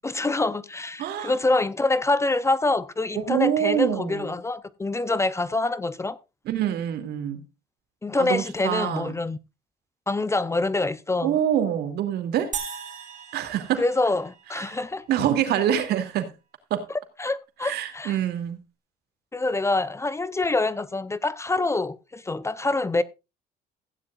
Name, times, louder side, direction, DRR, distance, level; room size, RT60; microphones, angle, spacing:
voice 1, 0.0-6.2 8.0-9.4 10.1-11.4 13.8-15.1 17.2-18.2 19.3-23.0, left 2 dB, 15° left, 0.6 m, -25 dB
voice 2, 1.0-1.3 3.1-4.3 6.5-7.4 8.2-9.1 11.2-12.5 13.3-13.8 14.6-14.8 15.1-16.3 16.7-16.8 17.6-18.6, right 10 dB, 75° right, 2.5 m, -25 dB
sound 1, 12.5-15.0, right 7 dB, 45° right, 2.9 m, -38 dB
15.5 x 10.5 x 2.4 m
cardioid pair, 110°, 17 cm